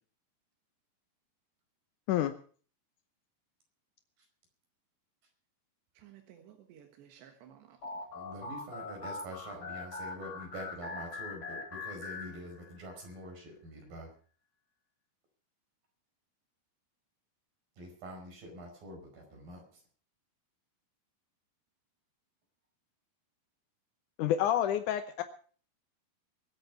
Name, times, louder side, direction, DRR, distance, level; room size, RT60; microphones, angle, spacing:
voice 1, 6.0-8.0, right 9 dB, 90° right, 4 dB, 3.7 m, -56 dB
sound 1, 7.8-12.9, left 3 dB, 40° left, 3.1 m, -42 dB
voice 2, 8.1-14.1 17.8-19.6, right 1 dB, 55° right, 2 dB, 6.6 m, -45 dB
voice 3, 24.2-25.2, left 11 dB, 85° left, 9 dB, 1.8 m, -28 dB
23.0 x 8.3 x 5.8 m, 0.43 s
omnidirectional pair, 4.8 m